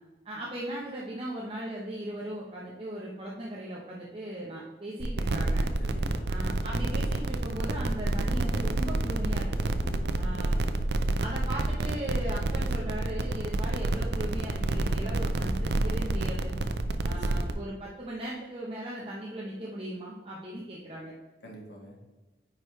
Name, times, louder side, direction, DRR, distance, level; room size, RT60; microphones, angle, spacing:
voice 1, 0.2-5.7 6.3-9.7 10.2-10.6 11.2-16.5 17.0-21.1, right 1 dB, 30° right, -4 dB, 0.9 m, -38 dB
sound 1, 5.0-17.5, right 2 dB, 75° right, 0.5 m, -28 dB
voice 2, 5.8-6.2 9.8-10.6 17.1-17.5 21.4-22.0, equal, 80° left, -1 dB, 1.9 m, -46 dB
9.1 x 4.9 x 3.2 m, 1.2 s
head